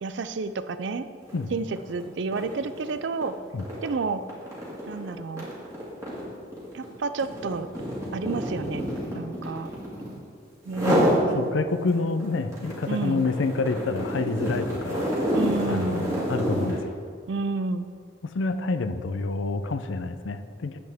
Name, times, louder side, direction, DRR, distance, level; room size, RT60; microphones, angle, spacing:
voice 1, 0.0-1.1 1.5-3.4 3.8-4.2 4.9-5.5 6.7-7.7 8.1-8.9 9.1-9.7 10.6-11.5 12.9-13.2 15.3-16.2 17.3-17.9, right 4 dB, 70° right, 12 dB, 0.4 m, -30 dB
sound 1, 1.2-1.4 1.8-10.2 10.7-11.2 11.7-16.8, equal, 15° right, 1.9 m, -28 dB
voice 2, 11.3-15.1 15.7-16.9 18.2-20.8, left 3 dB, 75° left, 10 dB, 0.5 m, -28 dB
9.2 x 7.9 x 3.5 m, 2.1 s
head